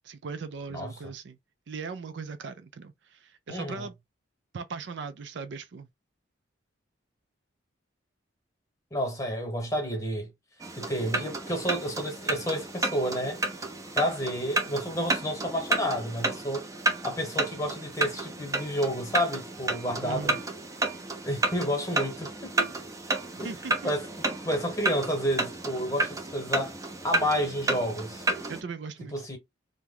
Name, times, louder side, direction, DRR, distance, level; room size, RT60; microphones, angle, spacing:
voice 1, 0.0-1.4 1.7-3.9 4.5-5.9 20.0-20.4 23.3-23.9 28.3-29.1, right 4 dB, 65° right, 0.4 m, -39 dB
voice 2, 0.7-1.1 3.5-3.9 8.9-10.3 10.8-13.4 14.0-16.6 17.0-20.4 21.2-22.7 23.4-23.5 23.8-26.8 27.0-28.3 29.1-29.4, equal, 15° left, 1.1 m, -30 dB
sound 1, 10.6-28.6, right 2 dB, 15° right, 0.5 m, -31 dB
2.9 x 2.1 x 3.7 m
head